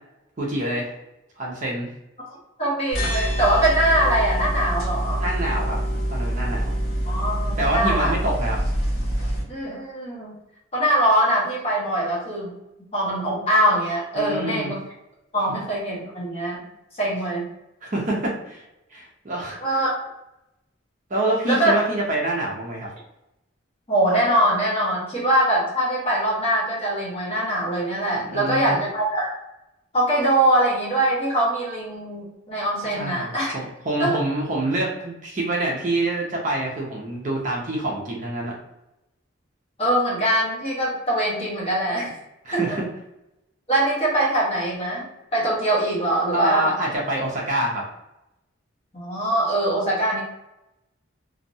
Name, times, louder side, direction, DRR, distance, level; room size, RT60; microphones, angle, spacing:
voice 1, 0.4-1.0 1.4-1.9 5.2-5.8 6.1-6.7 7.6-8.6 14.1-14.7 17.8-18.6 18.9-19.8 21.1-22.9 28.2-28.8 32.9-38.6 42.4-42.9 46.3-47.8, right 1 dB, 35° right, -2 dB, 0.5 m, -26 dB
voice 2, 2.3-5.2 7.0-8.1 9.5-10.3 10.7-12.5 12.9-14.7 15.3-16.6 16.9-17.5 19.6-19.9 21.5-21.7 23.9-29.3 29.9-33.5 34.0-34.1 39.8-42.1 42.5-42.8 43.7-45.1 45.3-46.7 48.9-50.2, right 1 dB, 30° left, -6 dB, 0.9 m, -22 dB
sound 1, 2.9-9.4, right 1 dB, 85° left, 1.2 m, -25 dB
2.6 x 2.1 x 2.6 m, 0.91 s
head